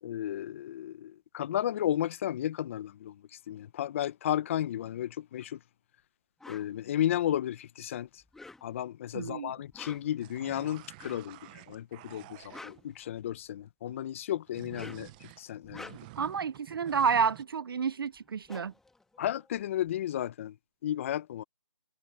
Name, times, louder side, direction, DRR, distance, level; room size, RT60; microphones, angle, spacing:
voice 1, 0.0-5.6 6.5-8.2 8.6-16.0 19.2-20.6 20.8-21.4, left 11 dB, 25° left, 0.8 m, -33 dB
sound 1, 6.4-6.7 8.2-8.9 9.6-10.2 11.0-11.3 12.3-13.5 14.5-15.2 15.6-16.3 17.8-17.9 18.1-19.8, left 3 dB, ahead, 1.6 m, -49 dB
voice 2, 9.1-9.5 16.2-18.7, right 6 dB, 50° right, 0.6 m, -30 dB
sound 2, 10.2-12.9 14.5-17.4, right 21 dB, 15° right, 0.9 m, -50 dB
hypercardioid pair, 160°, 16 cm